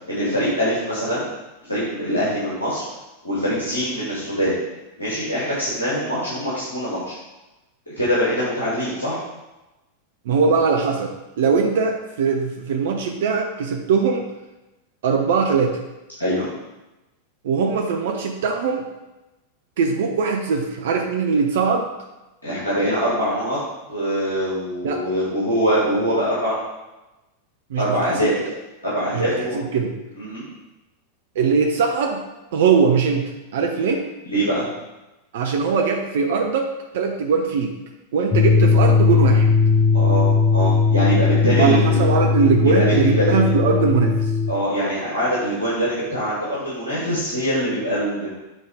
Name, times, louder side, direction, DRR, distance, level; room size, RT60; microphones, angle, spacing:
voice 1, 0.1-1.3 1.7-2.8 3.2-4.6 5.0-7.1 8.0-9.2 10.4-10.5 16.2-16.5 22.4-23.6 23.9-26.6 27.8-28.3 28.8-29.6 30.2-30.4 34.2-34.6 39.9-42.1 42.6-43.3 44.5-48.3, equal, 80° left, -9 dB, 2.7 m, -23 dB
voice 2, 10.3-11.1 11.4-14.2 15.0-15.8 17.4-18.9 19.8-21.9 24.8-25.0 27.7-28.3 29.1-29.9 31.4-32.2 32.5-34.1 35.3-36.7 36.9-37.8 38.1-39.5 41.6-44.3, right 5 dB, 55° right, 3 dB, 0.8 m, -21 dB
sound 1, 38.3-44.5, left 5 dB, 15° left, 0.8 m, -18 dB
8.2 x 4.1 x 5.0 m, 1.0 s
figure-of-eight pair, 90°, 0 cm